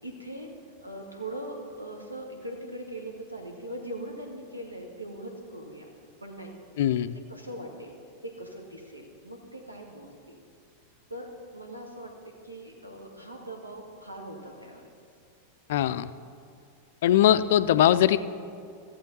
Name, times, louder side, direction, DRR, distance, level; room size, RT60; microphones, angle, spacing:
voice 1, 0.0-0.5 0.8-5.9 6.2-6.5 7.3-8.0 8.2-10.4 11.1-14.9, right 1 dB, 85° right, 1 dB, 1.5 m, -41 dB
voice 2, 6.8-7.2 15.7-16.1 17.0-18.2, left 11 dB, 55° left, 14 dB, 0.4 m, -21 dB
15.0 x 7.6 x 4.0 m, 2.3 s
figure-of-eight pair, 90°, 0 cm